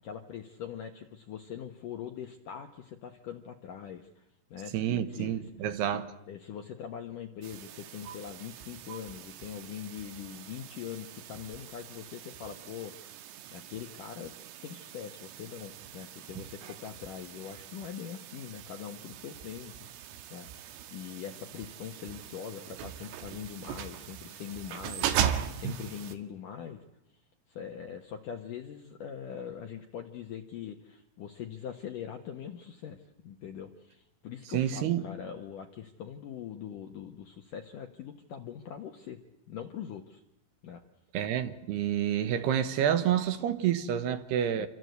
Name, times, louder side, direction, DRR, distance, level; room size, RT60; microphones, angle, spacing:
voice 1, 0.0-5.4 5.9-14.3 14.6-26.8 27.5-39.2 39.5-40.2 40.6-40.8 44.6-44.7, left 8 dB, 75° left, 1.9 m, -42 dB
voice 2, 4.7-6.1 34.5-35.0 41.1-44.7, right 10 dB, 65° right, 2.9 m, -28 dB
sound 1, 7.4-26.2, right 9 dB, 90° right, 4.2 m, -39 dB
27.5 x 25.5 x 8.2 m
omnidirectional pair, 5.8 m